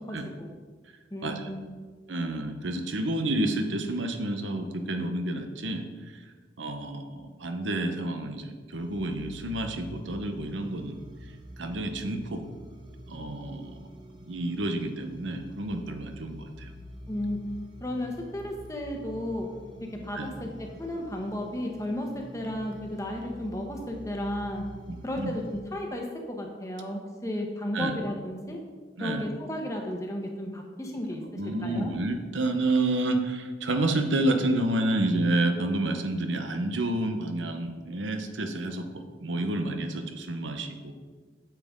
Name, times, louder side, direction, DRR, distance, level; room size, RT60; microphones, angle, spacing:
voice 1, 0.1-0.5 1.1-1.8 17.1-17.4 17.8-19.5 19.9-24.6 25.0-28.6 29.0-31.2 31.6-31.9, left 1 dB, 15° left, 1 dB, 1.0 m, -34 dB
voice 2, 2.1-11.0 11.6-12.4 13.1-13.9 14.2-16.7 20.1-20.3 24.9-25.3 27.7-28.0 29.0-29.3 31.3-40.9, right 2 dB, 90° right, 7 dB, 0.9 m, -29 dB
sound 1, 8.8-25.6, equal, 25° right, 0.7 m, -46 dB
9.1 x 7.5 x 3.7 m, 1.4 s
head